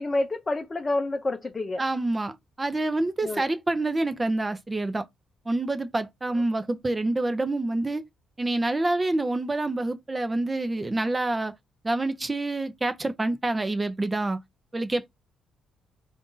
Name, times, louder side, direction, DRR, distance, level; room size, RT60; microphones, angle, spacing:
voice 1, 0.0-1.8 3.2-3.4, left 2 dB, 25° left, 0.7 m, -28 dB
voice 2, 1.8-2.3 2.6-5.0 5.5-8.0 8.4-11.5 11.8-14.4 14.7-15.1, right 2 dB, 20° right, 0.6 m, -27 dB
3.6 x 2.6 x 3.7 m
cardioid pair, 90°, 0 cm